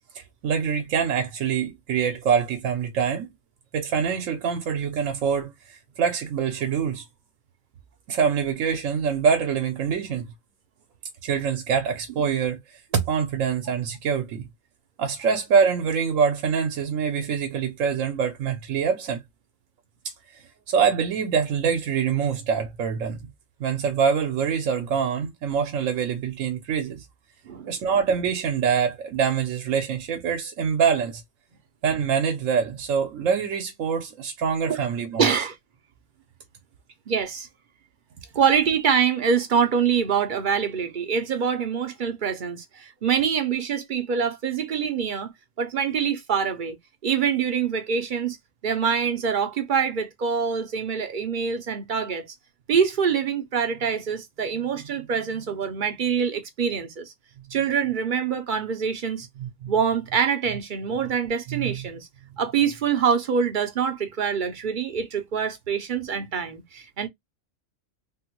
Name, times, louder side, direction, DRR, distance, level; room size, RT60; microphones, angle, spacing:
voice 1, 0.1-3.3 3.7-7.1 8.1-10.3 11.2-12.6 12.9-14.5 15.0-19.2 20.7-23.3 23.6-27.0 27.7-31.2 31.8-35.3 59.4-59.7 61.5-61.8, right 6 dB, 80° right, 1.1 m, -25 dB
voice 2, 35.2-35.6 37.1-37.5 38.3-45.3 45.6-46.8 47.0-48.4 48.6-52.3 52.7-57.1 57.5-59.3 59.7-62.1 62.4-67.1, right 7 dB, 55° right, 0.6 m, -25 dB
3.5 x 2.1 x 2.9 m
omnidirectional pair, 1.4 m